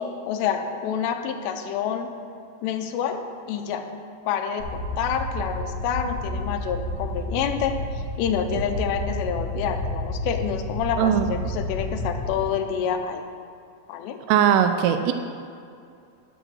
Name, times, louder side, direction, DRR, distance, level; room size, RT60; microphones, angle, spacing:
voice 1, 0.0-2.1 2.6-3.8 4.3-13.2 13.9-14.2, left 7 dB, 85° left, 6 dB, 2.9 m, -28 dB
sound 1, 4.6-12.4, left 1 dB, 60° left, 2.0 m, -31 dB
voice 2, 11.0-11.3 14.3-15.1, right 9 dB, 85° right, 8 dB, 2.6 m, -19 dB
10.0 x 6.5 x 6.2 m, 2.4 s
omnidirectional pair, 4.9 m